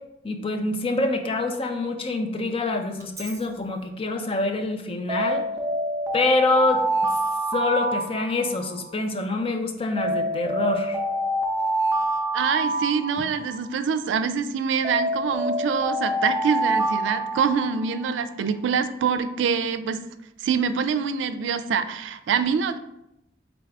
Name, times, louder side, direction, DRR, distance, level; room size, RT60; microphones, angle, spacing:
voice 1, 0.2-5.5 6.1-6.8 7.5-11.0, left 2 dB, 30° left, 5 dB, 0.5 m, -26 dB
Alarm, 3.0-3.4 5.1-8.8 10.0-13.7 14.8-18.1, right 1 dB, 15° right, 0.6 m, -26 dB
voice 2, 12.3-20.0 20.4-22.8, right 6 dB, 90° right, 11 dB, 0.3 m, -25 dB
3.9 x 3.3 x 3.5 m, 0.83 s
head